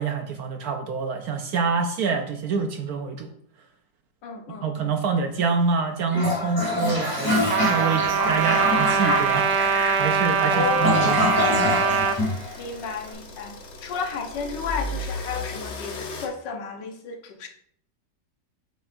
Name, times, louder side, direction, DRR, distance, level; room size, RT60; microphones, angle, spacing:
voice 1, 0.0-3.3 4.5-7.4 7.6-11.3, right 5 dB, 65° right, 5 dB, 1.0 m, -26 dB
voice 2, 4.2-4.9 10.5-11.2 12.6-13.5 13.8-17.5, left 5 dB, 75° left, 4 dB, 1.6 m, -31 dB
Toilet flush, 6.1-13.0, left 1 dB, 5° left, 2.7 m, -25 dB
Trumpet, 7.5-12.2, right 6 dB, 85° right, 1.4 m, -23 dB
sound 1, 8.0-16.3, left 2 dB, 50° left, 1.0 m, -38 dB
8.2 x 6.6 x 2.6 m, 0.65 s
omnidirectional pair, 2.0 m